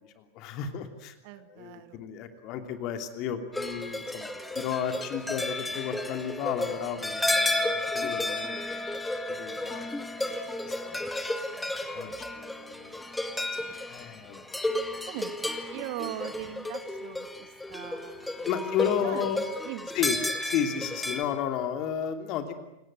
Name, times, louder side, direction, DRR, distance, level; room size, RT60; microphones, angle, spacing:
voice 1, 0.0-1.2 1.5-4.3 4.5-9.0 9.3-11.0 11.9-13.0 13.3-14.4 18.4-19.4 19.9-20.2 20.4-22.5, left 8 dB, 40° left, 7 dB, 3.0 m, -33 dB
voice 2, 1.2-2.0 11.5-12.2 12.9-13.0 15.1-18.5 19.0-19.2 19.6-20.0, right 14 dB, 45° right, 11 dB, 1.9 m, -41 dB
sound 1, 3.5-21.2, left 1 dB, 5° left, 2.0 m, -32 dB
29.0 x 18.5 x 9.3 m, 0.92 s
figure-of-eight pair, 90°, 0 cm